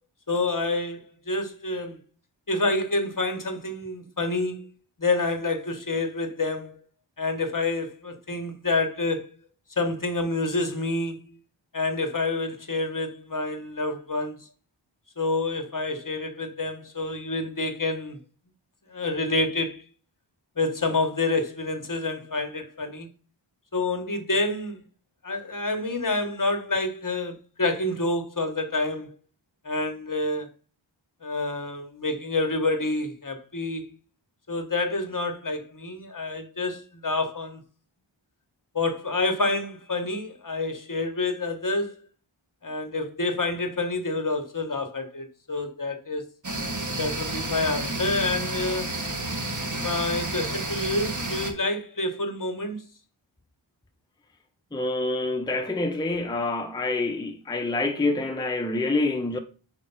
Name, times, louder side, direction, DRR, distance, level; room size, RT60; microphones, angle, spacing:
voice 1, 0.3-2.0 2.5-4.7 5.0-6.8 7.2-9.3 9.8-11.2 11.7-14.4 15.2-18.2 18.9-19.8 20.6-23.1 23.7-24.8 25.2-29.1 29.6-30.5 31.2-33.9 34.5-37.6 38.7-42.0 42.6-46.2 47.0-48.9 49.8-52.8, left 2 dB, 40° left, 1.1 m, -28 dB
sound 1, 46.4-51.5, right 2 dB, 40° right, 1.3 m, -30 dB
voice 2, 54.7-59.4, left 2 dB, 10° left, 0.6 m, -27 dB
5.0 x 4.4 x 5.5 m
wide cardioid pair, 55°, 47 cm